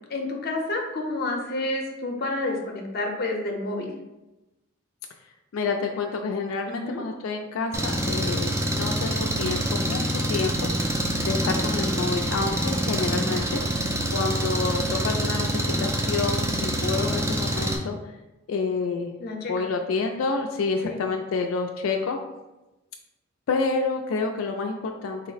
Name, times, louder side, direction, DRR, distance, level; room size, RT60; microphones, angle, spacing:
voice 1, 0.1-3.9 6.7-7.0 11.4-11.6 19.2-19.5 20.8-21.0, left 2 dB, 50° left, 2 dB, 0.6 m, -29 dB
voice 2, 5.5-10.7 11.2-13.6 14.1-18.0 18.5-19.1 19.5-22.2 23.5-25.2, left 4 dB, 85° left, 3 dB, 0.3 m, -28 dB
Engine, 7.7-17.8, right 1 dB, 15° right, 0.3 m, -26 dB
4.0 x 2.0 x 3.9 m, 1.0 s
head